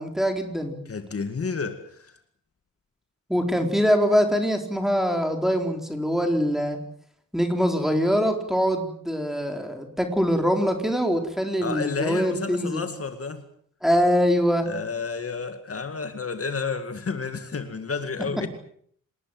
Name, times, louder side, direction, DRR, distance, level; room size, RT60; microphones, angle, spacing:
voice 1, 0.0-0.8 3.3-6.8 7.3-12.9 13.8-14.7, equal, ahead, 4.0 m, -23 dB
voice 2, 0.9-2.2 11.6-13.4 14.7-18.5, left 4 dB, 45° left, 2.1 m, -31 dB
27.5 x 19.5 x 7.8 m
wide cardioid pair, 150°, 32 cm